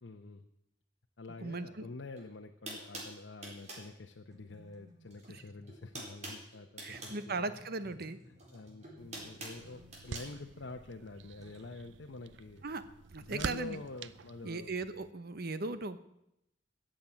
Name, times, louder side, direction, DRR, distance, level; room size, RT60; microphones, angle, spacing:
voice 1, 0.0-0.4 1.2-7.6 8.3-12.6 13.2-14.7, left 3 dB, 85° left, 3 dB, 0.8 m, -47 dB
voice 2, 1.4-1.9 5.3-5.4 6.8-8.2 12.6-12.8 13.1-13.8 14.4-16.0, right 3 dB, 55° right, 12 dB, 1.0 m, -38 dB
sound 1, 2.1-2.2 2.7-3.9 5.1-5.4 5.6-7.2 8.4-10.3, right 2 dB, 40° right, 4.2 m, -45 dB
sound 2, 4.3-6.0 6.9-11.7, left 1 dB, 20° right, 2.4 m, -60 dB
sound 3, 9.0-15.1, right 5 dB, 75° right, 0.5 m, -47 dB
14.0 x 7.7 x 8.8 m, 0.82 s
head